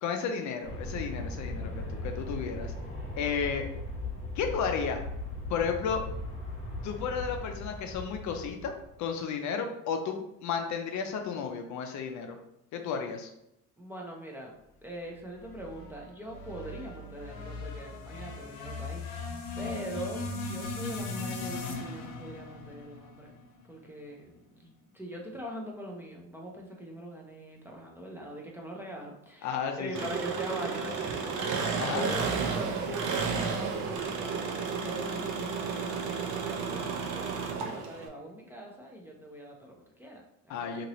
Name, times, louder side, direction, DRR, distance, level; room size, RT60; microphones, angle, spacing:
voice 1, 0.0-2.7 3.2-3.6 4.4-5.0 5.5-6.0 6.8-8.7 9.0-12.4 12.7-13.3 29.4-30.1 31.8-32.1 40.5-40.9, left 6 dB, 55° left, 5 dB, 0.5 m, -33 dB
Aircraft, 0.6-9.0, left 1 dB, 20° left, 1.0 m, -38 dB
voice 2, 13.8-19.0 19.6-23.3 23.7-40.9, right 1 dB, 5° right, -1 dB, 0.6 m, -42 dB
sound 1, 15.4-23.8, left 3 dB, 85° left, 0.8 m, -39 dB
Engine, 29.9-38.1, right 5 dB, 60° right, 0.6 m, -32 dB
2.9 x 2.6 x 3.0 m, 0.83 s
cardioid pair, 105°, 34 cm